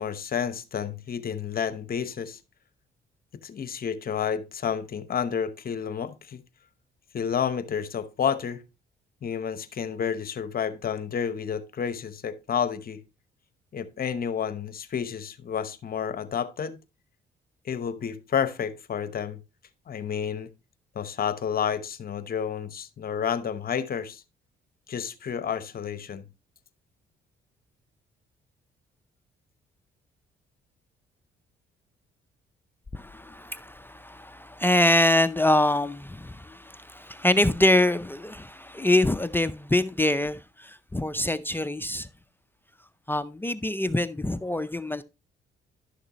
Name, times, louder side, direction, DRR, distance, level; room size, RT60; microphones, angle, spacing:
voice 1, 0.0-2.4 3.4-6.4 7.1-8.6 9.2-13.0 13.7-16.8 17.6-19.4 19.9-20.5 20.9-24.2 24.9-26.2, left 7 dB, 50° left, 0.9 m, -30 dB
voice 2, 32.9-42.1 43.1-45.0, left 1 dB, 10° left, 0.5 m, -25 dB
11.5 x 6.5 x 2.9 m
cardioid pair, 90°, 20 cm